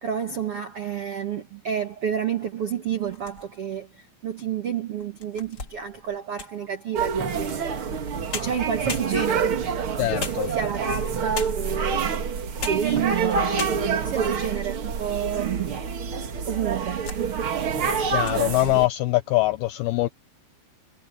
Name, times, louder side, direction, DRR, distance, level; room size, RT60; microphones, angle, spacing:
voice 1, 0.0-7.7 8.3-9.6 10.0-12.3 12.6-16.0 16.5-17.1, right 8 dB, 85° right, 1.2 m, -30 dB
sound 1, 3.0-3.8 4.4-4.5 5.0-6.7 8.0-8.1 8.3-9.5 10.2-10.9 11.3-11.8 12.4-13.0 13.2-13.3 13.6-14.1 14.7-15.5 15.8-15.9 16.6-17.3 17.6-17.8 18.1-18.4, left 4 dB, 30° left, 2.1 m, -37 dB
sound 2, 6.9-18.9, right 6 dB, 55° right, 1.5 m, -27 dB
voice 2, 10.0-10.5 18.1-20.1, left 18 dB, 85° left, 2.2 m, -23 dB
omnidirectional pair, 5.2 m